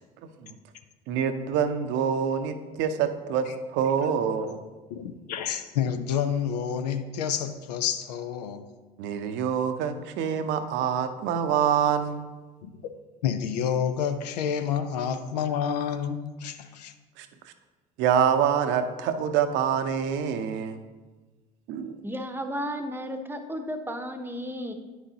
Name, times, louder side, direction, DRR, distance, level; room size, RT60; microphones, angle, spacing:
voice 1, 1.1-4.6 9.0-12.2 17.2-17.3 18.0-20.8 21.7-21.9, right 8 dB, 65° right, 9 dB, 0.6 m, -26 dB
voice 2, 4.9-8.7 12.6-12.7 13.2-16.9, left 8 dB, 90° left, 9 dB, 0.5 m, -29 dB
voice 3, 22.0-24.7, equal, 10° right, 6 dB, 0.8 m, -33 dB
9.2 x 6.1 x 2.8 m, 1.3 s
hypercardioid pair, 70°, 20 cm